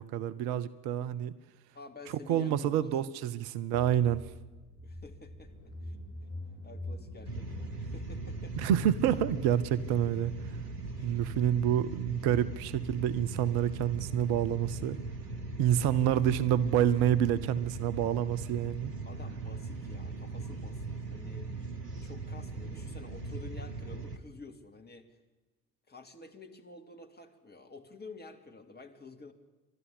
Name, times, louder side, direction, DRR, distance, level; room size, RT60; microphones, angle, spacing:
voice 1, 0.0-1.3 2.3-4.3 8.6-10.6 11.0-15.0 15.6-18.9, right 10 dB, 55° right, 16 dB, 0.9 m, -28 dB
voice 2, 1.7-3.0 4.8-5.5 5.8-6.0 6.6-8.6 11.0-11.2 16.0-16.2 19.1-21.7 22.0-25.2 25.9-29.3, left 3 dB, 20° left, 4 dB, 2.7 m, -50 dB
Car / Engine, 3.7-10.8, left 1 dB, 55° left, 6.9 m, -46 dB
sound 1, 7.2-24.2, right 3 dB, 85° right, 1.2 m, -39 dB
30.0 x 12.5 x 8.5 m, 1.2 s
figure-of-eight pair, 55°, 46 cm